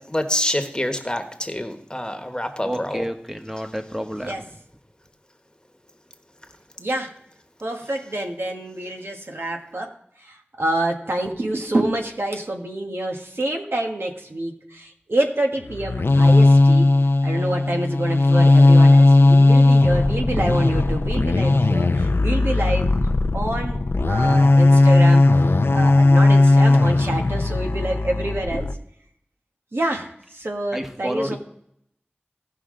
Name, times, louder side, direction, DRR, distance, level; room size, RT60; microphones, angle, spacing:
voice 1, 0.1-3.0, left 1 dB, 20° left, 5 dB, 1.2 m, -26 dB
voice 2, 2.6-4.4 30.7-31.4, equal, 10° right, 5 dB, 1.2 m, -30 dB
voice 3, 6.8-7.2 7.6-16.9 17.2-25.2 25.7-28.8 29.7-31.4, right 1 dB, 75° right, 2 dB, 1.4 m, -27 dB
sound 1, 15.6-28.7, left 2 dB, 75° left, 0.5 m, -16 dB
16.5 x 5.7 x 3.8 m, 0.72 s
wide cardioid pair, 45°, 4 cm